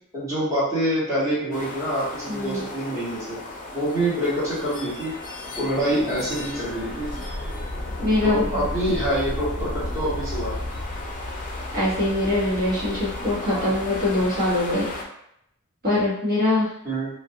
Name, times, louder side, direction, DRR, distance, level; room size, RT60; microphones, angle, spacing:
voice 1, 0.1-3.4 3.7-5.1 5.6-7.1 8.2-10.6 13.5-13.7 16.8-17.1, right 1 dB, 15° right, -10 dB, 1.2 m, -26 dB
sound 1, 1.5-15.0, left 1 dB, 40° left, 0.4 m, -33 dB
voice 2, 2.3-2.6 8.0-9.0 11.7-14.9 15.8-16.7, left 1 dB, 45° right, -8 dB, 1.1 m, -23 dB
2.4 x 2.1 x 2.7 m, 0.76 s
head